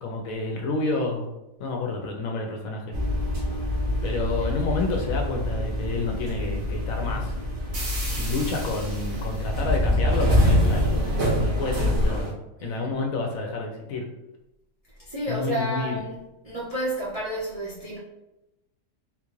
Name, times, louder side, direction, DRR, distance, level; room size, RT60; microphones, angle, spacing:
voice 1, 0.0-1.3 1.6-2.9 4.0-7.3 8.2-11.1 11.3-12.3 12.6-14.0 15.3-16.0, left 3 dB, 70° left, 1 dB, 0.9 m, -29 dB
sound 1, 2.9-12.3, left 1 dB, 90° right, 1.5 m, -25 dB
voice 2, 12.6-12.9 15.0-18.0, right 1 dB, 60° right, -8 dB, 0.3 m, -31 dB
3.7 x 2.4 x 3.0 m, 0.95 s
omnidirectional pair, 1.7 m